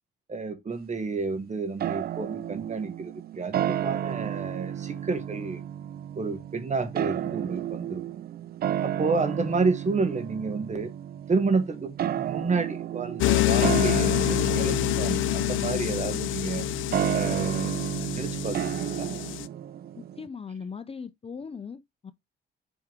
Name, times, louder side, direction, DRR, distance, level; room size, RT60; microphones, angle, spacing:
voice 1, 0.3-5.6 6.2-8.0 8.8-10.9 11.3-16.7 17.1-17.7 18.2-19.2, right 4 dB, 35° right, 1.8 m, -30 dB
sound 1, 1.8-20.3, right 10 dB, 50° right, 0.4 m, -32 dB
sound 2, 13.2-19.5, left 18 dB, 80° left, 0.5 m, -27 dB
voice 2, 20.0-22.1, left 5 dB, 30° left, 0.6 m, -39 dB
7.8 x 4.7 x 3.7 m
cardioid pair, 90°, 20 cm